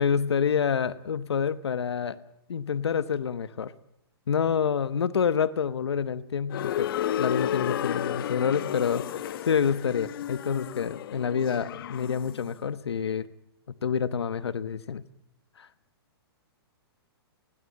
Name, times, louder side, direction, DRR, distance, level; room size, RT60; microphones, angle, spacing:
voice 1, 0.0-2.2 2.5-3.7 4.3-6.9 7.2-13.3 13.8-15.0 15.6-15.7, left 7 dB, 85° left, 15 dB, 1.1 m, -27 dB
sound 1, 6.5-12.4, left 11 dB, 60° left, 1.2 m, -32 dB
21.0 x 16.5 x 8.7 m, 0.84 s
hypercardioid pair, 135°, 13 cm